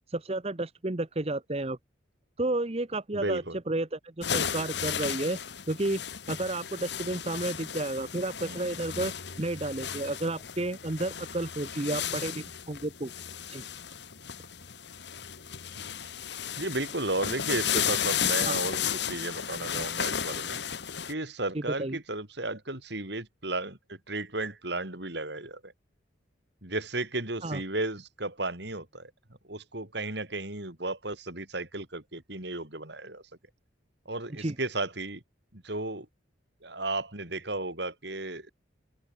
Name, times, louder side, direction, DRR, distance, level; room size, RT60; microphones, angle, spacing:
voice 1, 0.1-1.8 2.4-5.4 5.7-6.0 6.3-13.1 13.5-13.6 18.4-18.5 21.8-22.0 27.4-27.6 34.4-34.6, right 2 dB, 30° right, 1.0 m, -31 dB
voice 2, 3.1-3.6 8.4-8.6 15.7-16.1 16.6-20.6 21.1-25.7 26.6-29.1 29.4-33.2 34.1-35.2 35.5-36.1 36.6-38.5, right 2 dB, 60° right, 4.4 m, -34 dB
sound 1, 4.2-21.1, left 8 dB, 60° left, 1.6 m, -34 dB
open air
head